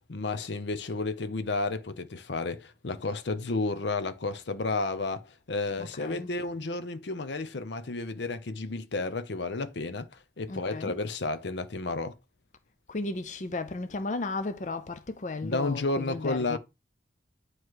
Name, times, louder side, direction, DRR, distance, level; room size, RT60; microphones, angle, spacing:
voice 1, 0.1-10.1 10.4-12.2 15.4-16.6, left 3 dB, 75° left, 0.7 m, -32 dB
voice 2, 5.8-6.3 10.5-10.9 12.9-16.6, left 3 dB, 40° left, 0.5 m, -35 dB
9.5 x 3.2 x 4.7 m
head